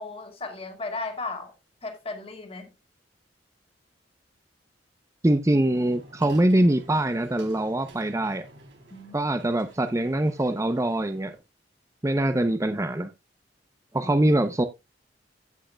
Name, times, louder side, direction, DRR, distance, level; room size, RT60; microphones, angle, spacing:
voice 1, 0.0-1.5 1.8-2.7 8.9-9.2 14.0-14.1, left 3 dB, 30° left, 1.9 m, -35 dB
voice 2, 5.2-8.5 9.1-11.3 12.0-13.1 13.9-14.6, right 1 dB, 15° right, 0.6 m, -23 dB
sound 1, 5.6-11.4, right 1 dB, 80° right, 3.4 m, -49 dB
15.5 x 6.3 x 2.2 m
head